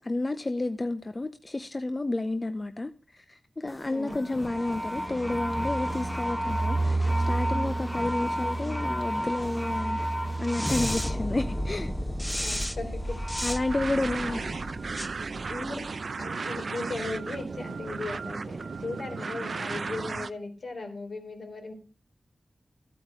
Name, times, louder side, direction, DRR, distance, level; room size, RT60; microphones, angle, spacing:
voice 1, 0.0-11.9 13.4-14.4, left 2 dB, 30° left, 0.6 m, -31 dB
sound 1, 3.7-16.1, equal, 10° left, 1.0 m, -33 dB
voice 2, 3.9-4.4 12.4-13.2 14.3-14.4 15.5-15.8 16.2-21.7, left 3 dB, 65° left, 3.7 m, -37 dB
sound 2, 4.5-14.1 14.4-14.5 14.8-15.2, right 2 dB, 20° right, 1.2 m, -33 dB
sound 3, 13.7-20.3, right 4 dB, 60° right, 0.6 m, -35 dB
14.5 x 8.6 x 4.8 m
wide cardioid pair, 100°, 0 cm